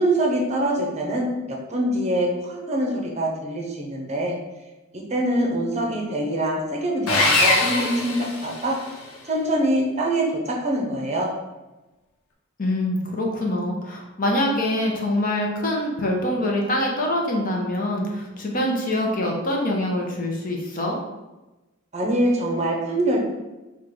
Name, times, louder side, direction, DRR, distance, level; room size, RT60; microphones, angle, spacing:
voice 1, 0.0-4.4 4.9-8.8 9.2-11.3 21.9-23.2, right 1 dB, 30° right, 0 dB, 0.7 m, -24 dB
Sawing, 7.1-9.0, left 2 dB, 80° left, 0.9 m, -22 dB
voice 2, 12.6-21.0, left 1 dB, 40° left, -1 dB, 0.7 m, -24 dB
4.4 x 2.3 x 4.7 m, 1.1 s
head